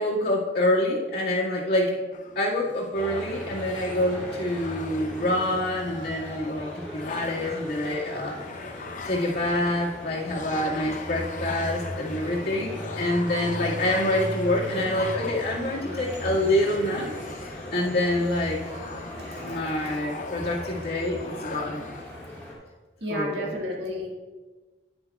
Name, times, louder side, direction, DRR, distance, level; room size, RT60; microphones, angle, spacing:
voice 1, 0.0-2.0 2.4-8.4 8.8-17.1 17.7-18.6 19.4-21.8 23.1-23.5, left 1 dB, 60° left, -6 dB, 2.0 m, -26 dB
sound 1, 2.1-22.0, left 3 dB, 45° left, 0.7 m, -40 dB
sound 2, 2.9-22.5, left 1 dB, 10° left, 2.6 m, -38 dB
voice 2, 19.0-20.0 23.0-24.1, equal, 75° right, -1 dB, 1.9 m, -34 dB
10.0 x 9.8 x 2.3 m, 1.3 s
head